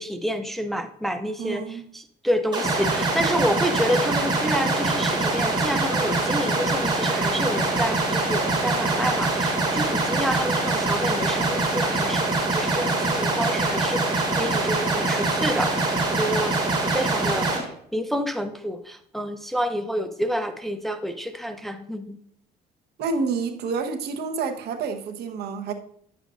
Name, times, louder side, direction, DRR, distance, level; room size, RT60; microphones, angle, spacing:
voice 1, 0.0-1.6 1.9-15.9 16.1-16.5 16.9-17.5 17.9-22.2, equal, ahead, 0.5 m, -28 dB
voice 2, 1.4-1.9 23.0-25.7, right 4 dB, 70° right, 1.1 m, -28 dB
sound 1, 2.5-17.6, right 2 dB, 25° right, 3.4 m, -24 dB
9.8 x 7.2 x 2.5 m
cardioid pair, 110°, 17 cm